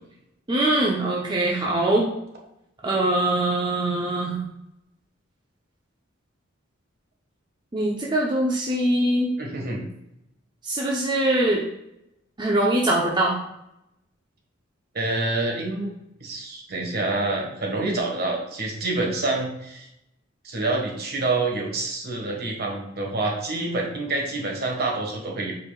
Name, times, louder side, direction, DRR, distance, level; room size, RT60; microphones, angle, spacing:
voice 1, 0.5-2.1 2.8-4.5 7.7-9.3 10.6-11.7 12.4-13.4, right 1 dB, 25° right, -3 dB, 0.8 m, -22 dB
voice 2, 9.4-9.9 14.9-15.9 16.2-19.9 20.4-25.5, right 2 dB, 55° right, 0 dB, 1.6 m, -27 dB
8.3 x 4.7 x 2.4 m, 0.84 s
head